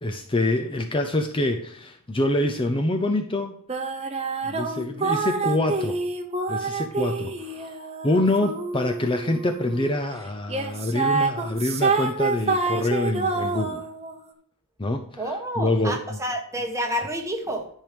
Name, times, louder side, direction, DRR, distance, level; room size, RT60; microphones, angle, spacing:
voice 1, 0.0-3.5 4.4-6.0 6.5-7.7 8.0-13.8 14.8-16.0, left 1 dB, 25° left, 5 dB, 0.7 m, -26 dB
sound 1, 3.7-9.9 10.5-14.2, right 4 dB, 30° right, 1.0 m, -27 dB
voice 2, 15.2-17.7, equal, 15° right, 2 dB, 1.4 m, -29 dB
10.5 x 4.6 x 5.1 m, 0.62 s
head